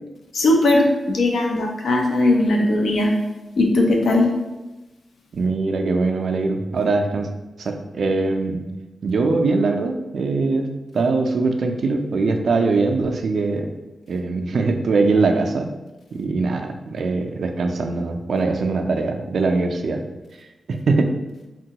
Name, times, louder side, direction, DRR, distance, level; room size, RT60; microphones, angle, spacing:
voice 1, 0.3-3.1 3.6-4.3, left 2 dB, 80° left, 1 dB, 0.4 m, -18 dB
voice 2, 5.3-7.3 7.6-8.6 9.0-13.7 14.1-15.7 16.1-20.0 20.7-21.1, right 3 dB, 60° right, 4 dB, 0.3 m, -22 dB
3.7 x 2.2 x 2.8 m, 1.1 s
wide cardioid pair, 175°, 0 cm